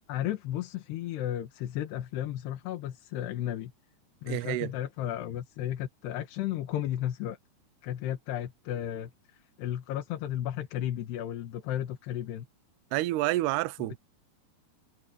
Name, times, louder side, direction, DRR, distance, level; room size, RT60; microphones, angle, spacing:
voice 1, 0.1-3.7 4.2-7.4 7.8-12.5 13.8-14.0, left 12 dB, 90° left, 3.6 m, -34 dB
voice 2, 4.3-4.7 12.9-14.0, right 17 dB, 85° right, 2.7 m, -29 dB
omnidirectional pair, 4.6 m